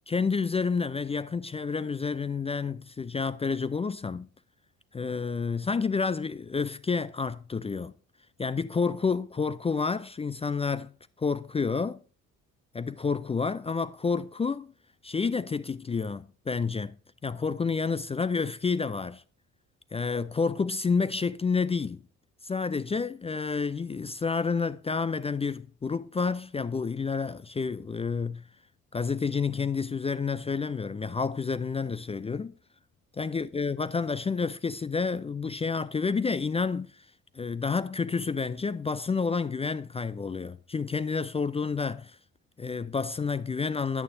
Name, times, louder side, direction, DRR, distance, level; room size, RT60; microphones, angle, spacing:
voice 1, 0.1-4.3 4.9-7.9 8.4-10.9 11.2-12.0 12.7-14.7 15.0-17.0 17.2-19.2 19.9-22.0 22.4-28.4 28.9-32.5 33.2-37.1 37.3-42.2 42.6-44.0, left 5 dB, 15° left, 0.4 m, -29 dB
11.0 x 9.1 x 2.6 m
figure-of-eight pair, 50°, 42 cm